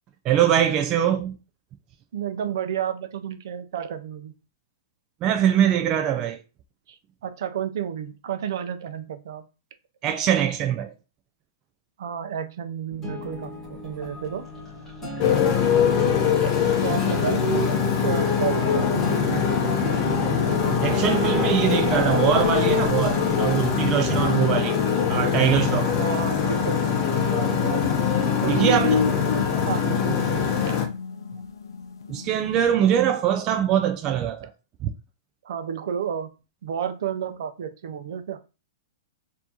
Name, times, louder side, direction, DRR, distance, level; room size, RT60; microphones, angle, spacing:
voice 1, 0.2-1.3 5.2-6.4 10.0-10.9 20.8-24.8 25.1-25.9 28.5-29.0 32.1-34.5 34.8-34.9, right 10 dB, 25° right, 0.4 m, -22 dB
voice 2, 2.1-4.3 6.9-9.5 12.0-13.5 13.8-14.4 15.7-15.8 16.3-16.5 16.8-17.8 18.0-20.6 24.4-24.5 26.0-27.9 28.4-29.2 29.6-30.8 35.4-36.3 36.6-38.4, right 8 dB, 65° right, 0.6 m, -32 dB
sound 1, 12.9-23.6, left 2 dB, 10° left, 1.4 m, -34 dB
Motorcycle, 15.2-30.9, left 7 dB, 35° left, 0.8 m, -23 dB
sound 2, 27.1-32.7, left 5 dB, 90° left, 0.5 m, -34 dB
4.4 x 2.8 x 2.9 m
hypercardioid pair, 155°, 2 cm